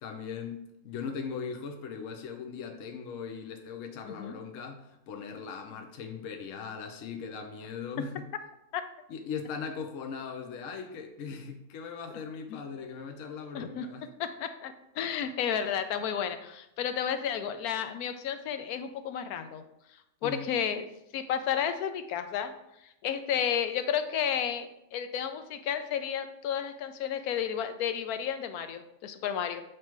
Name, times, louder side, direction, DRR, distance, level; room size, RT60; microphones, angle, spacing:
voice 1, 0.0-8.3 9.1-14.0 20.2-20.5, left 6 dB, 65° left, 4 dB, 0.9 m, -39 dB
voice 2, 4.1-4.4 8.7-8.8 12.5-12.6 13.5-13.9 14.2-19.6 20.2-20.8 21.1-22.5 22.8-29.6, left 8 dB, 90° left, 9 dB, 1.1 m, -32 dB
7.5 x 3.2 x 4.5 m, 0.83 s
omnidirectional pair, 1.5 m